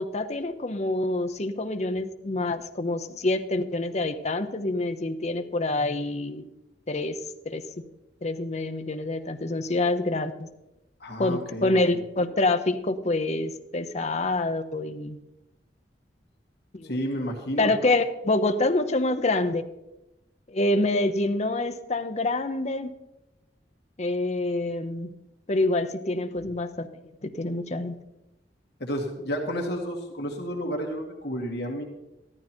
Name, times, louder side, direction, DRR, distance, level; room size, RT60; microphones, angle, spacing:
voice 1, 0.0-6.4 6.9-7.2 7.5-7.6 8.2-10.5 11.2-15.2 16.7-16.9 17.6-19.6 20.5-22.9 24.0-25.1 25.5-26.9 27.2-28.0, left 2 dB, 40° left, 8 dB, 0.8 m, -26 dB
voice 2, 11.0-12.0 16.8-17.7 28.8-31.8, equal, 65° left, 1 dB, 2.0 m, -31 dB
13.5 x 12.0 x 4.5 m, 0.93 s
head